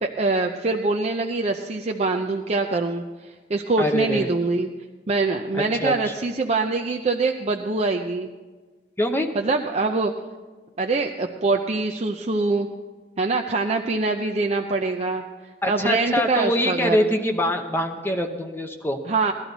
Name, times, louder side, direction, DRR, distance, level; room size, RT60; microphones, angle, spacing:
voice 1, 0.0-4.7 5.1-8.3 9.3-10.1 10.8-12.7 13.2-17.0 19.0-19.3, right 3 dB, 35° right, 3 dB, 0.6 m, -24 dB
voice 2, 3.8-4.3 5.5-6.1 9.0-9.3 15.6-19.0, left 1 dB, 15° left, 4 dB, 0.8 m, -24 dB
18.0 x 12.0 x 4.0 m, 1.3 s
head